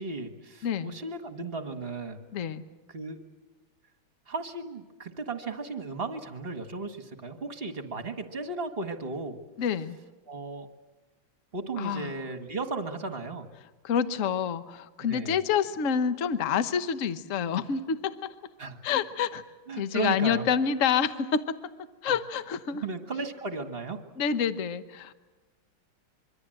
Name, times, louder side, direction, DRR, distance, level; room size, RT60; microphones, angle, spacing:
voice 1, 0.0-2.2 2.9-3.2 4.3-9.4 10.3-10.7 11.5-13.5 15.0-15.4 18.6-18.8 19.7-20.5 22.0-22.2 22.7-24.0, right 3 dB, 30° right, 7 dB, 1.7 m, -35 dB
voice 2, 0.6-1.0 2.3-2.6 9.6-10.0 11.8-12.1 13.8-18.3 18.8-19.4 19.8-21.6 22.0-22.8 24.2-25.1, left 7 dB, 50° left, 11 dB, 1.1 m, -28 dB
25.5 x 24.0 x 7.8 m, 1.2 s
omnidirectional pair, 2.3 m